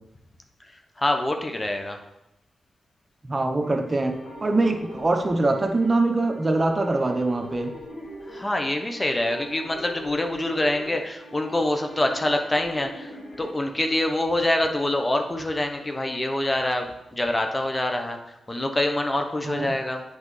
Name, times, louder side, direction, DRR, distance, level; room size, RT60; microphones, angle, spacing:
voice 1, 1.0-2.0 8.3-13.1 13.4-18.2 18.5-20.0, left 1 dB, 25° left, 5 dB, 1.0 m, -25 dB
voice 2, 3.2-7.8 19.4-19.7, right 2 dB, 35° right, 5 dB, 0.9 m, -23 dB
sound 1, 3.6-13.5, equal, 75° left, 1.5 m, -41 dB
8.2 x 5.2 x 3.3 m, 0.89 s
supercardioid pair, 45°, 0 cm